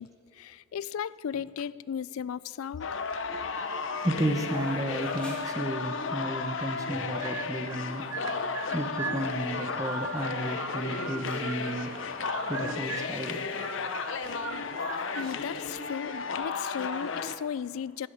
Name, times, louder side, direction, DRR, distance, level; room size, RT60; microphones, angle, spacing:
voice 1, 0.0-3.0 15.2-18.1, left 8 dB, 85° left, 21 dB, 0.4 m, -36 dB
sound 1, 2.8-17.4, left 4 dB, 65° left, 0.7 m, -34 dB
voice 2, 3.2-3.7 4.0-8.0 8.7-12.0 12.5-13.4, right 1 dB, 15° right, 7 dB, 0.8 m, -33 dB
sound 2, 3.9-15.3, left 1 dB, 5° left, 2.7 m, -48 dB
sound 3, 7.2-7.8 8.1-11.9 12.2-13.2 13.6-15.4, right 8 dB, 85° right, 0.5 m, -40 dB
13.0 x 10.5 x 9.9 m, 2.3 s
head